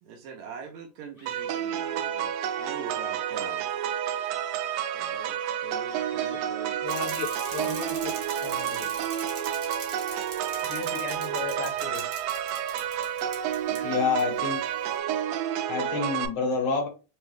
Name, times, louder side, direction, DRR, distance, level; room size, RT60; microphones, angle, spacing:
voice 1, 0.0-3.7 4.9-6.8 13.7-14.4, right 5 dB, 75° right, 1.8 m, -44 dB
sound 1, 1.2-3.0 5.8-7.9, left 2 dB, 15° left, 0.6 m, -47 dB
sound 2, 1.3-16.3, right 10 dB, 90° right, 2.1 m, -30 dB
voice 2, 6.8-9.0 10.6-12.2, left 6 dB, 75° left, 2.2 m, -37 dB
Bicycle, 6.9-13.8 14.2-14.3, right 5 dB, 60° right, 2.5 m, -41 dB
voice 3, 13.8-14.6 15.7-16.9, left 5 dB, 60° left, 1.9 m, -27 dB
5.4 x 2.3 x 3.2 m
omnidirectional pair, 3.6 m